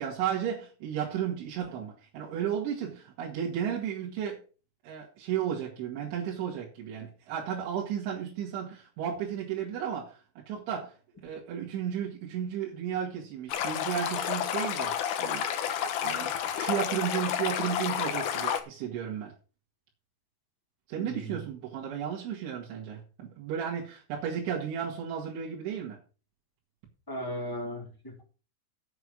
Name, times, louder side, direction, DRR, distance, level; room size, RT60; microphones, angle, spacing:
voice 1, 0.0-4.4 4.8-11.0 11.2-15.5 16.0-19.3 20.9-26.0, right 9 dB, 80° right, -3 dB, 4.5 m, -34 dB
Stream, 13.5-18.6, left 9 dB, 80° left, 1.8 m, -30 dB
voice 2, 21.0-21.4 27.1-28.2, equal, 5° left, 1 dB, 2.1 m, -37 dB
8.0 x 7.0 x 7.9 m, 0.35 s
omnidirectional pair, 5.3 m